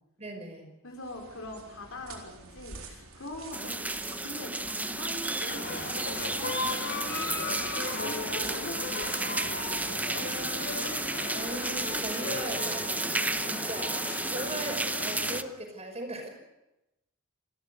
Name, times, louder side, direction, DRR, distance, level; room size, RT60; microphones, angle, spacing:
voice 1, 0.2-0.7 3.6-3.7 8.2-8.3 11.3-14.0 14.2-16.3, right 2 dB, 30° right, 4 dB, 5.5 m, -39 dB
voice 2, 0.8-7.5 7.8-10.7, left 1 dB, 75° left, 2 dB, 4.5 m, -43 dB
sound 1, 0.9-12.8, right 4 dB, 80° right, 4.1 m, -50 dB
sound 2, 3.5-15.4, right 2 dB, 10° right, 0.8 m, -32 dB
sound 3, 5.5-15.4, left 3 dB, 55° left, 3.5 m, -37 dB
29.5 x 13.0 x 8.1 m, 0.93 s
head